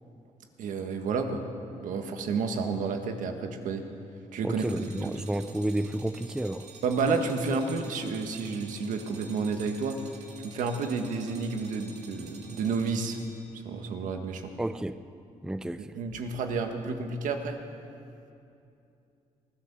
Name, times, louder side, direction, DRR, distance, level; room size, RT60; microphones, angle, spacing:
voice 1, 0.6-1.4 1.7-3.8 4.3-4.6 5.0-5.1 6.8-10.0 10.4-13.2 13.6-14.4 15.9-17.6, right 4 dB, 80° right, 1.5 m, -30 dB
voice 2, 4.4-6.7 14.6-15.0 15.4-16.0, right 1 dB, 5° right, 0.5 m, -31 dB
sound 1, 4.6-13.6, right 4 dB, 55° right, 2.5 m, -50 dB
18.5 x 10.0 x 6.9 m
cardioid pair, 95°, 13 cm